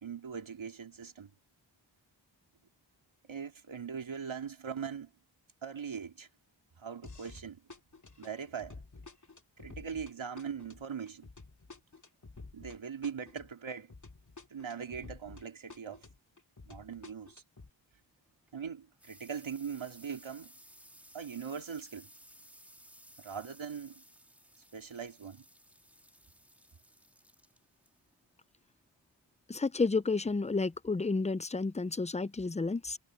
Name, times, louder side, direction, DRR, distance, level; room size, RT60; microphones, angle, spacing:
voice 1, 0.0-1.3 3.3-5.1 5.6-6.3 6.8-7.6 8.2-8.8 9.6-11.3 12.5-13.9 14.5-16.0 16.7-17.4 18.5-20.5 21.1-22.1 23.2-24.0 24.7-25.4, right 7 dB, 80° right, 2.4 m, -41 dB
sound 1, 7.0-7.4 7.7-15.4 15.7-17.7, left 3 dB, 40° left, 2.4 m, -51 dB
sound 2, 18.3-29.6, equal, 5° right, 3.1 m, -59 dB
voice 2, 29.5-33.0, left 3 dB, 15° left, 0.4 m, -31 dB
wide cardioid pair, 95°, 46 cm